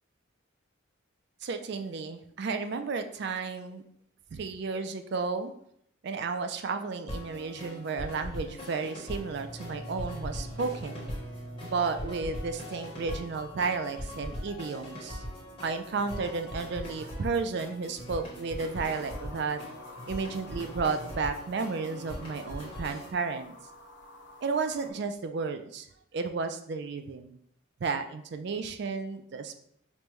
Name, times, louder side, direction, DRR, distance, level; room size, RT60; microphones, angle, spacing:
voice 1, 1.4-3.8 4.3-5.5 6.0-11.1 11.6-15.2 15.6-19.6 20.1-23.5 24.4-25.9 26.1-27.4 27.8-29.6, right 4 dB, 55° right, 8 dB, 0.3 m, -33 dB
sound 1, 7.1-23.1, equal, 25° left, 1.1 m, -41 dB
sound 2, 9.1-21.1, equal, 5° right, 0.7 m, -48 dB
sound 3, 18.7-24.9, left 2 dB, 55° left, 0.7 m, -51 dB
5.1 x 2.2 x 3.0 m, 0.71 s
head